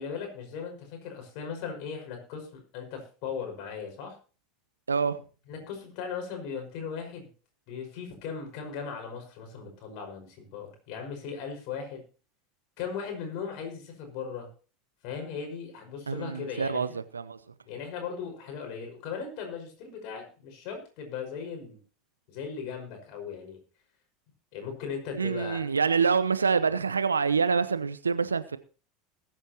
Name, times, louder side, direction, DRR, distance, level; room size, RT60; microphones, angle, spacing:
voice 1, 0.0-4.1 5.5-7.3 7.7-12.0 12.8-14.5 15.0-17.0 17.7-21.8 22.3-23.6 24.5-25.6, left 6 dB, 55° left, 5.4 m, -38 dB
voice 2, 4.9-5.2 16.1-17.4 25.1-28.6, right 5 dB, 85° right, 0.9 m, -26 dB
20.5 x 9.1 x 3.0 m
figure-of-eight pair, 80°, 0 cm